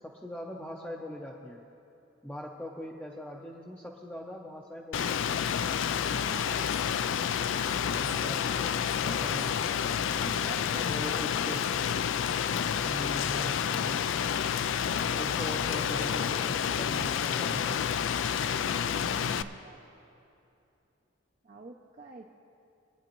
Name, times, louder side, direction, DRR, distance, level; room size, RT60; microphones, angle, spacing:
voice 1, 0.0-1.6 2.2-5.4 7.9-8.7 9.0-9.9 10.8-11.7 12.8-14.2 15.2-17.8, equal, 5° left, -2 dB, 0.6 m, -41 dB
Rain, 4.9-19.4, left 8 dB, 65° left, 0.3 m, -29 dB
voice 2, 6.0-6.7 9.0-9.4 10.3-11.1 18.4-19.8 21.4-22.2, right 3 dB, 40° right, 1 dB, 0.5 m, -47 dB
23.0 x 9.6 x 3.0 m, 2.8 s
head